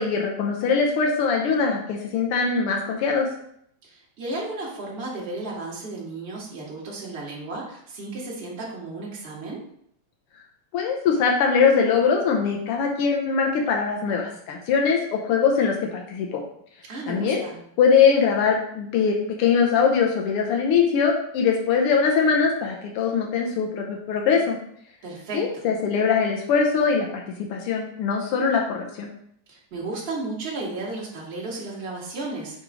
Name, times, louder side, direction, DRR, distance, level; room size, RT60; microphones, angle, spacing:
voice 1, 0.0-3.3 10.7-16.4 17.1-17.4 17.8-24.6 25.3-27.2 27.5-29.1, left 6 dB, 75° left, 0 dB, 1.3 m, -22 dB
voice 2, 3.8-9.6 16.9-17.6 25.0-25.7 29.5-32.6, right 2 dB, 30° right, -4 dB, 1.2 m, -34 dB
6.4 x 3.1 x 4.9 m, 0.69 s
omnidirectional pair, 3.4 m